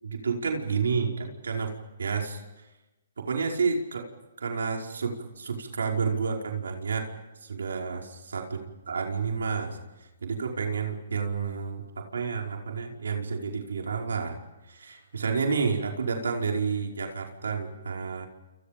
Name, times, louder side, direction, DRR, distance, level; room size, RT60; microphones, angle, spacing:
voice 1, 0.0-2.4 3.2-4.1 4.4-7.1 7.4-8.6 8.9-14.4 14.7-18.3, right 5 dB, 85° right, 2 dB, 5.1 m, -30 dB
29.5 x 29.0 x 5.2 m, 1.0 s
hypercardioid pair, 155°, 0 cm